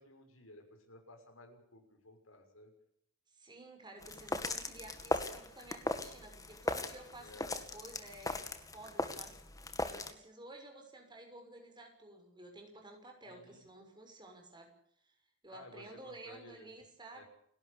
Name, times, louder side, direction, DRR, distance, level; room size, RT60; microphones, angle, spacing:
voice 1, 0.0-2.7 7.2-7.6 13.2-13.6 15.5-16.7 17.1-17.2, left 2 dB, 85° left, 4 dB, 6.4 m, -56 dB
voice 2, 3.3-9.3 9.8-14.7 15.0-15.2 15.4-17.2, right 2 dB, 20° right, 3 dB, 6.2 m, -53 dB
sound 1, 4.0-10.1, left 2 dB, 15° left, 2.0 m, -38 dB
29.5 x 12.5 x 8.7 m, 0.73 s
head